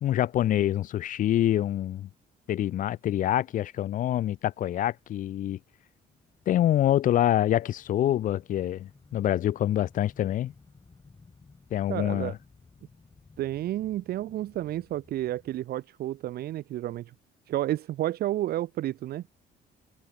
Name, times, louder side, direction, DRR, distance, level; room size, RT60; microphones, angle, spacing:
voice 1, 0.0-2.1 2.5-5.6 6.5-10.5 11.7-12.3, left 12 dB, 50° left, 0.5 m, -26 dB
sound 1, 5.0-15.6, left 4 dB, 25° left, 7.5 m, -58 dB
voice 2, 11.9-12.3 13.4-17.1 17.5-19.2, right 14 dB, 65° right, 1.5 m, -31 dB
cardioid pair, 110°, 17 cm